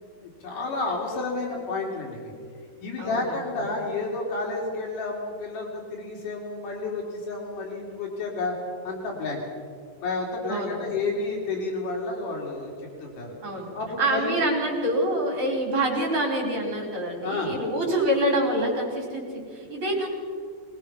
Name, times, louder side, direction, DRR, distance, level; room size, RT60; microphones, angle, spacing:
voice 1, 0.2-2.3 2.8-8.6 8.8-9.4 10.0-13.3 13.7-14.4 17.2-17.5, left 3 dB, 90° left, 0 dB, 4.6 m, -31 dB
voice 2, 3.0-3.4 10.5-10.9 13.4-13.7 14.0-20.1, right 1 dB, 40° right, -2 dB, 5.8 m, -26 dB
22.0 x 21.0 x 5.8 m, 2.2 s
omnidirectional pair, 3.6 m